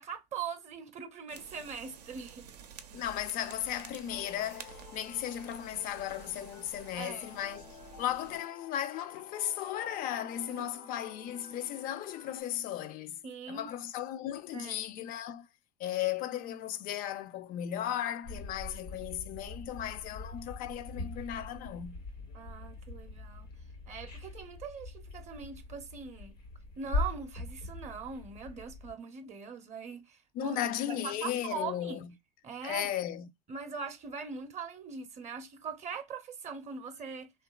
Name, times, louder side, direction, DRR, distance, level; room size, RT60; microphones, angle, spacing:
voice 1, 0.0-2.5 7.0-7.3 10.6-10.7 13.2-13.7 14.5-14.8 22.3-23.5 23.9-26.4 26.8-32.0 32.4-32.9 33.5-37.3, right 5 dB, 35° right, 0.5 m, -41 dB
sound 1, 1.3-8.4, right 7 dB, 90° right, 0.4 m, -51 dB
voice 2, 2.9-15.5 15.8-22.0 30.3-32.1 32.6-33.3, left 11 dB, 45° left, 0.4 m, -36 dB
sound 2, 4.1-12.4, left 5 dB, 70° left, 0.9 m, -53 dB
sound 3, 18.2-28.9, left 2 dB, 90° left, 1.1 m, -41 dB
2.8 x 2.3 x 2.2 m
hypercardioid pair, 75°, 20 cm